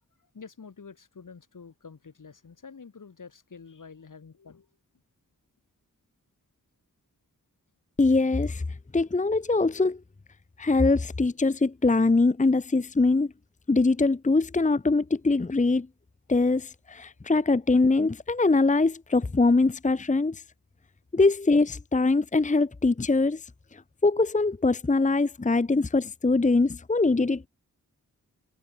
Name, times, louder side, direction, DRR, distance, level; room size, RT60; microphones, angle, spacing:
voice 1, 0.3-4.7, left 5 dB, 65° left, 3.2 m, -47 dB
voice 2, 8.0-8.6 8.9-10.0 10.6-13.3 13.7-15.9 16.3-20.4 21.1-23.4 23.7-27.5, left 3 dB, 20° left, 0.8 m, -23 dB
wide cardioid pair, 75°, 34 cm